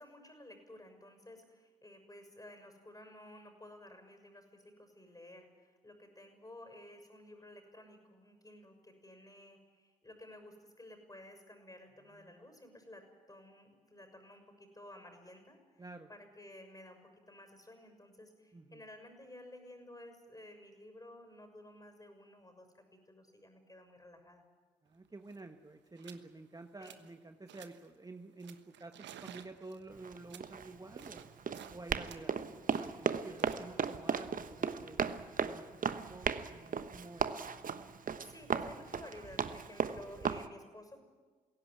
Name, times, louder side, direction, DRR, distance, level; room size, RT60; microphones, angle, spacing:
voice 1, 0.0-24.4 26.8-27.0 38.2-41.0, left 1 dB, 20° left, 6 dB, 6.6 m, -54 dB
voice 2, 12.1-12.5 15.8-16.1 18.5-18.8 24.8-31.2 31.7-35.0 35.4-37.3, right 2 dB, 20° right, 6 dB, 1.4 m, -51 dB
sound 1, 24.9-25.0 25.2-25.5 26.0-26.3 26.6-27.2 27.5-27.9 28.4-31.8 32.1-35.1, right 10 dB, 65° right, 1.2 m, -55 dB
Run, 29.9-40.5, right 6 dB, 45° right, 1.2 m, -36 dB
21.5 x 17.0 x 9.7 m, 1.4 s
hypercardioid pair, 45°, 20 cm